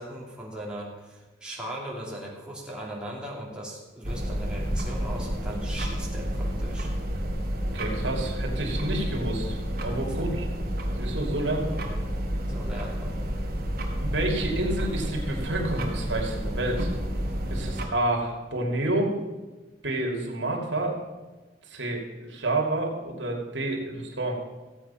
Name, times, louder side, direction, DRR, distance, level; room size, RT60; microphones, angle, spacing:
voice 1, 0.0-6.9 10.2-10.4 12.5-13.1, right 1 dB, 5° right, -5 dB, 2.7 m, -38 dB
sound 1, 4.0-17.9, equal, 55° right, 2.2 m, -30 dB
voice 2, 7.7-10.5 10.9-11.8 14.0-16.9 17.5-19.1 19.8-21.0 21.7-24.4, right 2 dB, 90° right, 0 dB, 2.7 m, -29 dB
15.5 x 8.3 x 5.7 m, 1.2 s
head